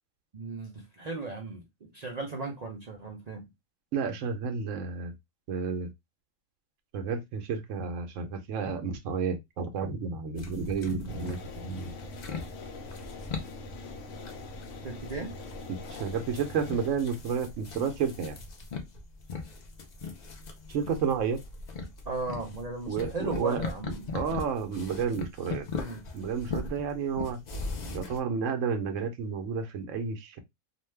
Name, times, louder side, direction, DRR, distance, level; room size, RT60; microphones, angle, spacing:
voice 1, 0.3-3.4 14.8-15.3 22.1-24.1 25.7-26.0, right 3 dB, 55° right, 0.4 m, -37 dB
voice 2, 3.9-5.1 5.5-5.9 6.9-11.9 15.7-18.4 20.7-21.4 22.9-25.7 26.1-27.4 27.9-30.4, right 6 dB, 75° right, 0.9 m, -31 dB
sound 1, 10.4-28.2, left 4 dB, 55° left, 0.5 m, -40 dB
sound 2, 11.1-16.9, left 3 dB, 70° left, 0.9 m, -43 dB
2.5 x 2.2 x 3.1 m
omnidirectional pair, 1.4 m